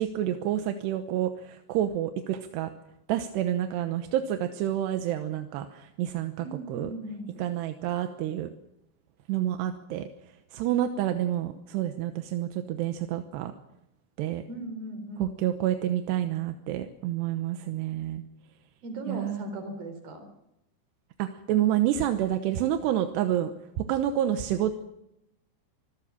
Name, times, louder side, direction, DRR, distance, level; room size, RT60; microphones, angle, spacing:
voice 1, 0.0-2.7 3.1-6.9 7.4-8.5 9.3-10.1 10.5-13.5 14.2-14.4 15.2-18.2 19.1-19.5 21.2-23.5 23.8-24.7, right 11 dB, 75° right, 8 dB, 2.9 m, -28 dB
voice 2, 6.4-7.3 14.5-15.3 18.8-20.3, right 1 dB, 55° right, 8 dB, 5.4 m, -38 dB
25.0 x 16.0 x 7.4 m, 0.84 s
omnidirectional pair, 5.3 m